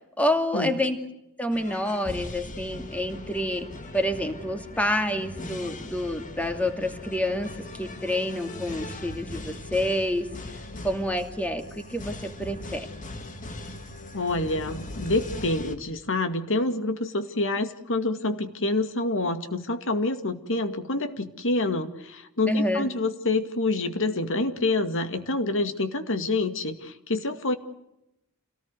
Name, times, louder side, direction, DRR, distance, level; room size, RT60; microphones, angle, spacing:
voice 1, 0.2-1.0 1.4-3.7 3.9-10.3 10.8-12.9 22.5-22.9, left 1 dB, 5° left, 6 dB, 2.5 m, -28 dB
sound 1, 1.5-15.8, left 1 dB, 35° left, 2.1 m, -40 dB
voice 2, 14.1-27.5, left 2 dB, 60° left, 8 dB, 2.2 m, -27 dB
28.0 x 18.5 x 7.8 m, 0.86 s
head